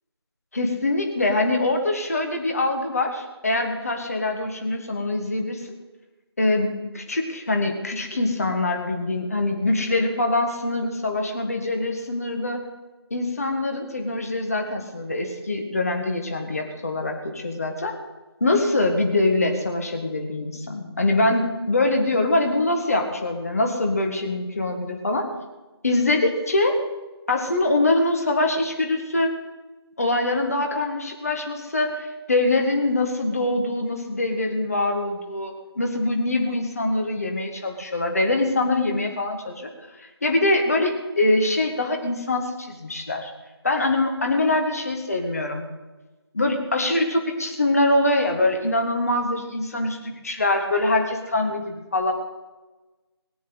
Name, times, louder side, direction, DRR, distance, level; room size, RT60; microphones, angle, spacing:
voice 1, 0.6-5.6 6.4-12.6 13.1-17.9 18.4-25.3 25.8-26.8 27.3-29.3 30.0-39.7 40.2-43.3 43.6-45.6 46.3-52.1, left 2 dB, 35° left, 3 dB, 1.6 m, -23 dB
18.5 x 8.3 x 8.1 m, 1.2 s
figure-of-eight pair, 165°, 14 cm